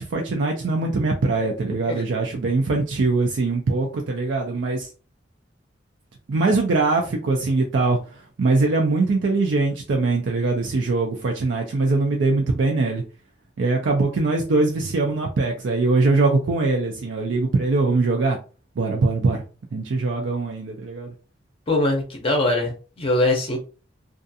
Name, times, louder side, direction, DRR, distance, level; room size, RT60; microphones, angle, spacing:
voice 1, 0.0-4.9 6.3-13.0 13.6-18.4 18.8-19.4 19.7-21.1, right 3 dB, 75° right, 1 dB, 0.4 m, -22 dB
voice 2, 21.7-23.6, left 2 dB, 30° left, 2 dB, 0.6 m, -22 dB
2.4 x 2.3 x 2.6 m, 0.36 s
head